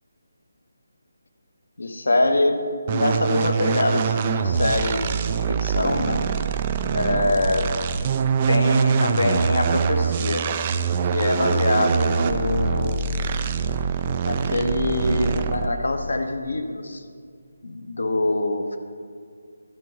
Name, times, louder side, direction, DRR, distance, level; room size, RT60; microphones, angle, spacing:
voice 1, 1.8-2.6 2.9-6.2 6.9-7.7 8.5-10.5 11.1-13.0 14.2-17.0 17.6-18.8, left 2 dB, 60° left, 6 dB, 1.0 m, -24 dB
sound 1, 2.9-15.8, right 6 dB, 25° right, 0.4 m, -24 dB
12.5 x 5.5 x 6.7 m, 2.2 s
figure-of-eight pair, 150°, 0 cm